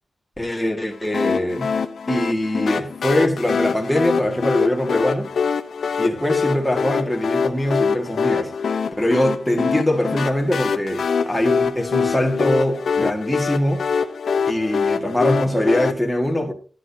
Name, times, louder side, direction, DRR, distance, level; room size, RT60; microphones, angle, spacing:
voice 1, 0.4-1.7 2.1-5.3 6.0-8.5 9.0-13.8 14.5-16.5, left 1 dB, 5° left, 1.8 m, -22 dB
sound 1, 1.1-15.9, left 5 dB, 75° left, 0.7 m, -24 dB
12.5 x 10.0 x 2.8 m
wide cardioid pair, 120°, 0 cm